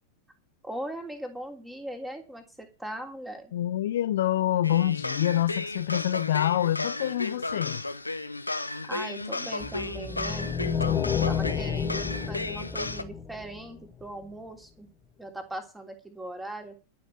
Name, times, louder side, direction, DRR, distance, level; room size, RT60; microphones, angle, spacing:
voice 1, 0.6-3.5 8.8-10.5 11.2-14.9 15.2-16.7, right 1 dB, 5° right, 3.2 m, -39 dB
voice 2, 3.5-7.8, left 12 dB, 60° left, 0.8 m, -26 dB
sound 1, 4.6-13.0, left 2 dB, 85° left, 1.0 m, -34 dB
sound 2, 9.6-14.0, left 7 dB, 20° left, 1.4 m, -30 dB
12.5 x 6.3 x 9.2 m
figure-of-eight pair, 90°, 0 cm